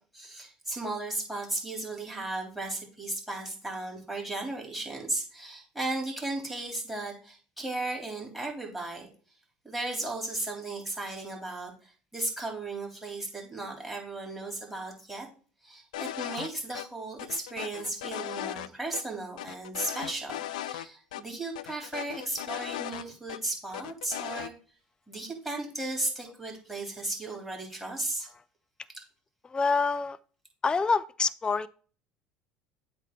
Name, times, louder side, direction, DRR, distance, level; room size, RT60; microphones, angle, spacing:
voice 1, 0.1-9.1 9.6-15.3 15.6-24.5 25.1-28.3, right 2 dB, 5° right, 3.3 m, -35 dB
sound 1, 15.9-16.5 16.7-16.9 17.2-18.7 18.9-19.0 19.4-20.9 21.1-21.2 21.6-23.4 23.7-24.5, left 13 dB, 85° left, 0.4 m, -37 dB
voice 2, 29.5-30.2 30.6-31.7, left 4 dB, 20° left, 0.4 m, -26 dB
8.0 x 2.7 x 6.0 m
hypercardioid pair, 80°, 4 cm